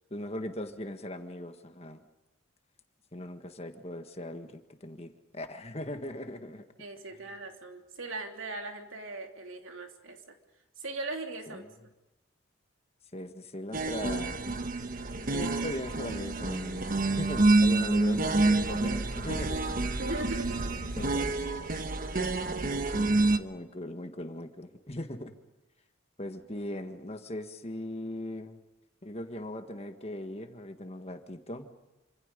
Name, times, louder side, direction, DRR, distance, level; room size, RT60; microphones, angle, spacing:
voice 1, 0.1-2.0 3.1-6.6 11.5-11.7 13.1-14.5 15.3-19.8 20.5-21.3 22.0-22.2 22.5-23.1 23.4-25.3 26.2-28.6 29.0-31.7, left 1 dB, 30° left, 7 dB, 1.6 m, -39 dB
voice 2, 6.8-10.3 10.8-11.6 20.0-20.7, right 2 dB, 70° right, 3 dB, 3.2 m, -39 dB
sound 1, 13.7-23.4, right 2 dB, 45° right, 1.2 m, -28 dB
27.5 x 26.5 x 5.3 m, 1.0 s
head